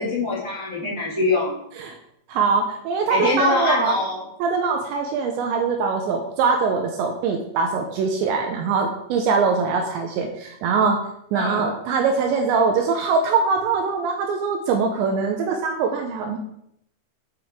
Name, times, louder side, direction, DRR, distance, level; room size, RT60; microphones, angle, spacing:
voice 1, 0.0-1.6 3.1-4.2 11.3-11.7, left 2 dB, 5° right, -8 dB, 2.3 m, -24 dB
voice 2, 2.3-3.9 4.4-11.0 11.3-16.4, right 5 dB, 80° right, 3 dB, 2.8 m, -22 dB
9.1 x 8.2 x 3.7 m, 0.74 s
omnidirectional pair, 5.9 m